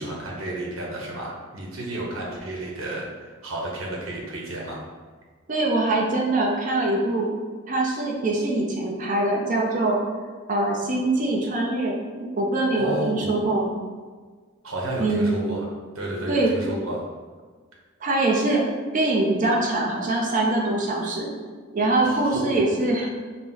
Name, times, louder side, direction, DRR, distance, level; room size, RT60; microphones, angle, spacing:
voice 1, 0.0-4.8 12.7-13.4 14.6-15.7 15.9-17.0 22.0-22.6, right 1 dB, 85° right, -3 dB, 0.9 m, -31 dB
voice 2, 5.5-7.3 7.7-10.0 10.5-13.8 15.0-15.4 16.3-16.5 18.0-18.6 18.9-21.3 21.7-23.1, right 2 dB, 40° right, -2 dB, 0.6 m, -23 dB
4.2 x 2.0 x 3.8 m, 1.5 s
head